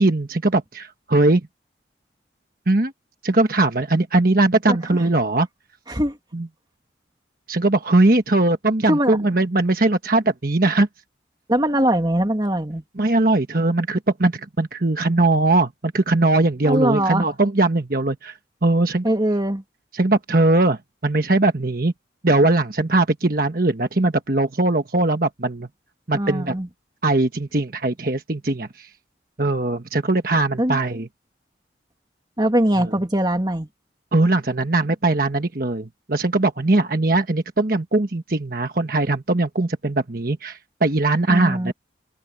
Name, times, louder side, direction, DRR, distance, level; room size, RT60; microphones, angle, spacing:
voice 1, 0.0-1.4 2.7-2.9 3.2-5.5 6.3-6.5 7.5-10.9 13.0-18.3 18.6-19.0 19.9-21.9 22.2-25.7 26.1-26.5 27.0-28.9 29.4-31.1 34.1-41.7, right 2 dB, 50° right, 1.3 m, -20 dB
voice 2, 11.5-12.8 16.6-17.3 19.0-19.6 26.1-26.7 30.6-30.8 32.4-33.7 41.3-41.7, right 1 dB, 20° right, 2.2 m, -21 dB
open air
head